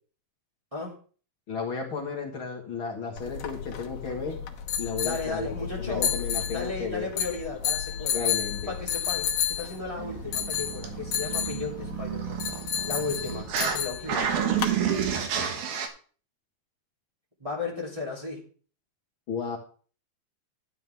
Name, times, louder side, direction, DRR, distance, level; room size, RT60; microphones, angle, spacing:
voice 1, 1.5-4.4 4.8-5.5 5.8-7.1 8.1-8.7 19.3-19.6, left 5 dB, 50° left, -1 dB, 1.6 m, -33 dB
sound 1, 3.2-14.8, left 8 dB, 70° left, 2.6 m, -32 dB
voice 2, 5.0-6.1 6.5-8.2 8.7-12.5 12.8-14.3 17.4-18.4, left 3 dB, 10° right, -4 dB, 2.4 m, -35 dB
sound 2, 10.0-13.8 14.1-15.9, right 8 dB, 90° right, 3.3 m, -30 dB
12.5 x 9.8 x 3.6 m, 0.41 s
omnidirectional pair, 4.3 m